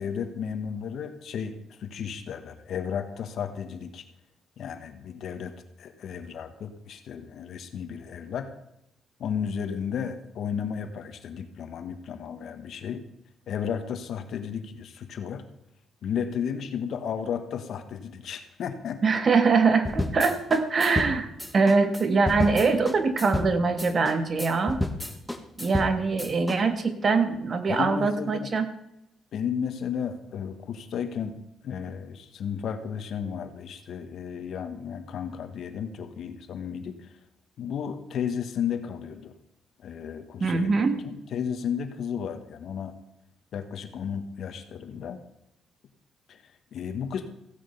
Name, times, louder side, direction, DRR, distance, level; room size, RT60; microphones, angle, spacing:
voice 1, 0.0-4.0 4.6-5.5 5.8-8.5 9.2-13.0 13.5-15.4 16.0-19.0 27.7-28.5 29.3-31.4 31.6-37.1 37.6-39.3 39.8-42.9 43.5-45.2 46.3-46.4 46.7-47.3, left 7 dB, 70° left, 8 dB, 1.5 m, -33 dB
voice 2, 19.0-24.8 25.6-28.7 40.4-41.0, right 4 dB, 40° right, 8 dB, 1.6 m, -23 dB
sound 1, 19.9-26.6, left 1 dB, 5° left, 1.5 m, -31 dB
15.5 x 8.8 x 5.6 m, 0.83 s
cardioid pair, 90°, 0 cm